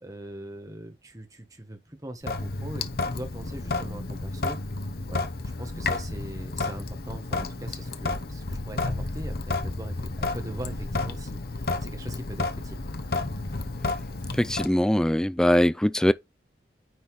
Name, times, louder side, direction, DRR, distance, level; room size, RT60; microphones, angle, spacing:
voice 1, 0.0-4.6 5.1-5.2 5.6-11.4 11.8-12.8, right 1 dB, 20° right, 1.5 m, -41 dB
Sink (filling or washing) / Drip, 2.2-14.7, left 3 dB, 60° left, 0.9 m, -31 dB
voice 2, 14.4-16.1, left 1 dB, 5° left, 0.3 m, -21 dB
9.5 x 4.1 x 3.4 m
head